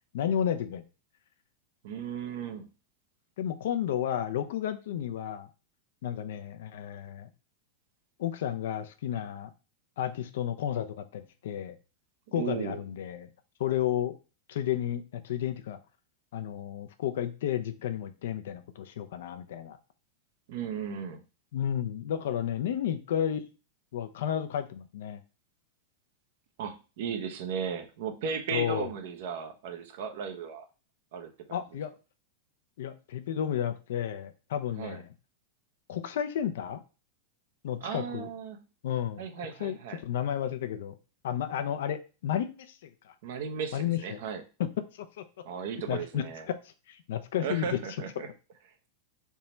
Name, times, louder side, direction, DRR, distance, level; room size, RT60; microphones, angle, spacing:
voice 1, 0.1-0.8 3.4-5.5 6.0-7.3 8.2-9.5 10.0-11.8 12.3-13.3 13.6-14.1 14.5-15.8 16.3-19.8 21.5-23.5 23.9-25.2 28.5-28.9 31.5-31.9 32.8-35.1 35.9-36.8 37.6-38.3 38.8-39.2 39.6-41.0 41.2-43.1 43.7-44.2 44.6-45.4 45.9-47.8, left 10 dB, 70° left, 10 dB, 0.6 m, -32 dB
voice 2, 1.8-2.7 12.3-12.8 20.5-21.2 26.6-30.7 31.1-31.6 34.8-35.0 37.8-38.6 39.2-40.0 43.2-44.4 45.4-46.5 47.4-48.3, right 7 dB, 65° right, 6 dB, 0.8 m, -36 dB
3.5 x 2.9 x 4.3 m, 0.32 s
hypercardioid pair, 105°, 0 cm